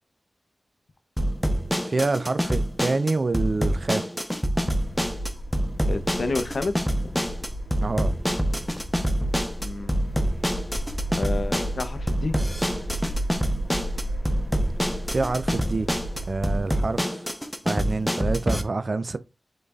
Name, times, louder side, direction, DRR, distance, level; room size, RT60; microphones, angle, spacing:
sound 1, 1.2-18.6, equal, ahead, 0.6 m, -26 dB
voice 1, 1.9-4.0 7.8-8.1 15.1-15.9 16.3-17.2 17.6-19.2, right 3 dB, 50° right, 0.4 m, -26 dB
sound 2, 4.6-16.6, equal, 20° left, 1.1 m, -33 dB
voice 2, 5.9-6.7 7.0-7.1 9.6-10.0 11.1-12.4, left 3 dB, 70° left, 0.5 m, -30 dB
5.3 x 3.9 x 2.3 m
wide cardioid pair, 85°, 0 cm